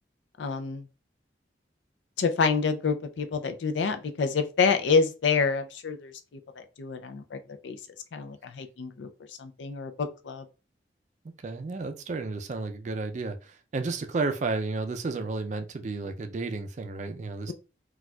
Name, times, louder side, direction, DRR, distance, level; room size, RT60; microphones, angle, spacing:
voice 1, 0.4-0.9 2.2-6.1 6.6-7.8 8.1-9.1 9.4-10.5, left 5 dB, 80° left, 0.4 m, -27 dB
voice 2, 11.4-17.5, right 3 dB, 40° right, 0.4 m, -32 dB
4.2 x 2.3 x 2.3 m
head